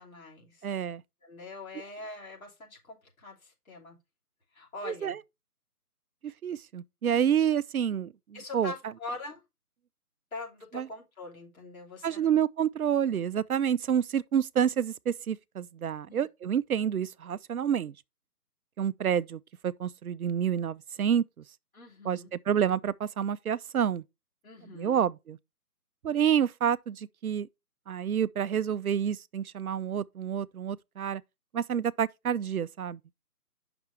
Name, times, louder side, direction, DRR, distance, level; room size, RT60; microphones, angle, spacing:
voice 1, 0.0-0.7 1.2-4.0 4.5-5.1 8.3-9.4 10.3-12.3 16.1-16.2 21.7-22.3 24.4-25.0, left 3 dB, 60° left, 3.2 m, -43 dB
voice 2, 0.6-1.0 4.8-5.2 6.2-8.7 10.7-10.9 12.0-17.9 18.8-21.2 22.0-24.0 24.6-25.4 26.0-27.5 27.9-31.2 31.5-33.1, right 8 dB, 65° right, 0.5 m, -28 dB
7.0 x 5.9 x 3.4 m
figure-of-eight pair, 160°, 47 cm